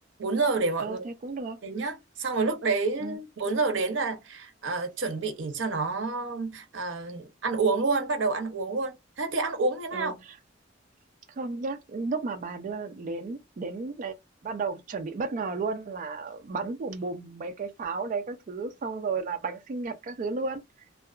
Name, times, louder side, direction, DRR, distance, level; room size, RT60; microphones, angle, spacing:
voice 1, 0.2-1.0 1.6-10.1, right 3 dB, 85° right, 0.7 m, -28 dB
voice 2, 0.8-1.6 3.0-3.2 9.9-10.4 11.4-14.1 14.4-20.6, right 4 dB, 45° right, 0.3 m, -33 dB
2.7 x 2.3 x 2.3 m
head